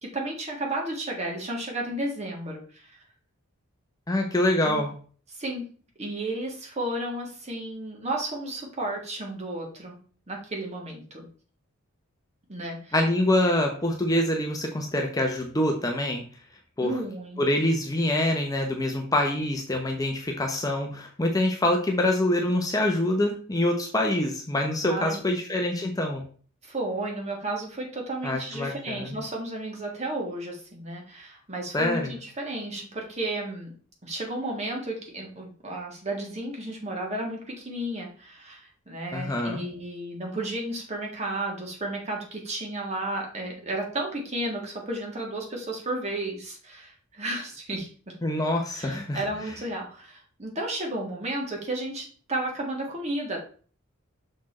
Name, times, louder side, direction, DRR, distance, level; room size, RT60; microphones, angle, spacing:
voice 1, 0.0-3.0 4.6-4.9 5.3-5.7 6.0-10.0 10.3-11.3 12.5-12.9 13.3-13.4 16.8-17.4 24.8-25.3 26.6-33.7 34.0-48.1 48.8-53.4, right 1 dB, 30° right, 0 dB, 1.8 m, -33 dB
voice 2, 4.1-4.9 12.9-16.3 16.8-17.0 17.4-26.2 28.2-29.2 31.7-32.1 39.1-39.6 48.2-49.2, left 1 dB, 15° left, 2 dB, 0.8 m, -25 dB
6.3 x 4.3 x 4.2 m, 0.42 s
head